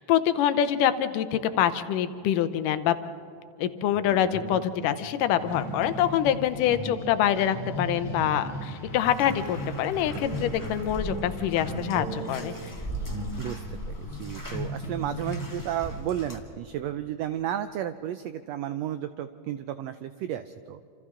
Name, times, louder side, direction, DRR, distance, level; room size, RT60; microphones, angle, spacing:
voice 1, 0.0-3.0 3.6-12.6, left 10 dB, 90° left, 11 dB, 2.4 m, -25 dB
sound 1, 3.9-5.0 5.4-6.2 6.6-9.6 9.9-13.3, right 1 dB, 70° right, 4.0 m, -38 dB
sound 2, 5.5-13.4 14.1-15.6, equal, 35° left, 2.1 m, -38 dB
Bathtub (filling or washing), 9.0-16.4, equal, 10° left, 1.2 m, -39 dB
voice 2, 14.0-20.8, right 11 dB, 85° right, 11 dB, 1.5 m, -33 dB
28.5 x 27.5 x 3.8 m, 2.6 s
omnidirectional pair, 3.7 m